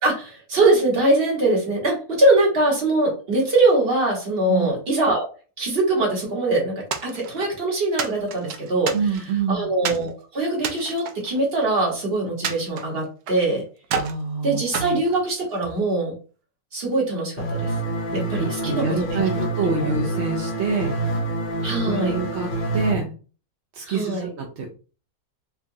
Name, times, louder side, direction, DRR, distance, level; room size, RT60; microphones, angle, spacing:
voice 1, 0.0-5.3 5.6-9.0 9.5-13.7 14.4-16.1 16.7-17.7 18.1-19.4 19.8-19.9 21.6-22.1 23.8-24.3, right 2 dB, 40° right, -1 dB, 1.4 m, -22 dB
sound 1, 6.9-7.6 8.0-9.4 9.8-10.1 10.6-11.9 12.4-13.5 13.8-14.2 14.7-15.8, right 6 dB, 80° right, 1.1 m, -30 dB
voice 2, 8.9-9.7 13.9-15.0 17.9-18.0 18.4-20.9 21.9-23.1 23.7-24.8, right 4 dB, 60° right, 0 dB, 0.7 m, -26 dB
sound 2, 17.4-22.9, right 1 dB, 45° left, 0.7 m, -27 dB
4.5 x 2.4 x 2.7 m, 0.36 s
omnidirectional pair, 1.6 m